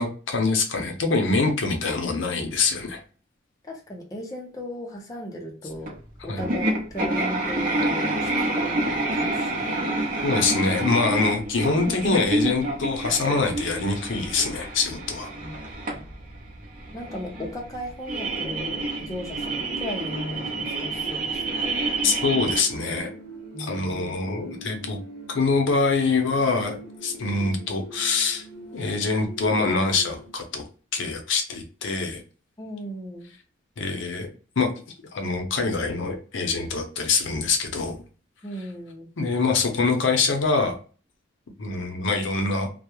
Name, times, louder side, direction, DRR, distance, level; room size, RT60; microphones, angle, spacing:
voice 1, 0.0-3.0 6.3-6.4 10.2-15.3 22.0-23.1 23.6-25.0 25.3-28.4 28.7-30.6 30.9-32.2 33.8-34.3 34.6-34.7 35.1-38.0 39.2-40.8 41.6-42.7, left 4 dB, 70° left, 4 dB, 0.6 m, -24 dB
voice 2, 3.6-9.9 11.2-11.3 15.3-15.6 15.9-16.1 16.9-21.8 23.5-24.1 32.6-33.3 38.4-39.1, equal, 15° left, -1 dB, 0.4 m, -36 dB
sound 1, 5.9-6.0 6.4-22.6, right 2 dB, 45° right, 0.7 m, -28 dB
sound 2, 18.4-30.3, right 2 dB, 65° right, 1.1 m, -43 dB
2.2 x 2.0 x 2.9 m, 0.37 s
head